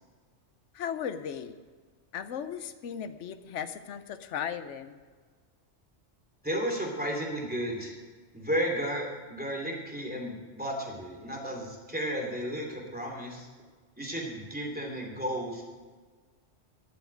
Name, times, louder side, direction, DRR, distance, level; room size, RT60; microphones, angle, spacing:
voice 1, 0.7-1.5 2.1-5.0, left 8 dB, 90° left, 11 dB, 1.0 m, -36 dB
voice 2, 6.4-7.9 8.3-13.5 14.0-15.6, equal, 10° right, 0 dB, 2.8 m, -33 dB
12.5 x 7.1 x 9.3 m, 1.5 s
omnidirectional pair, 1.2 m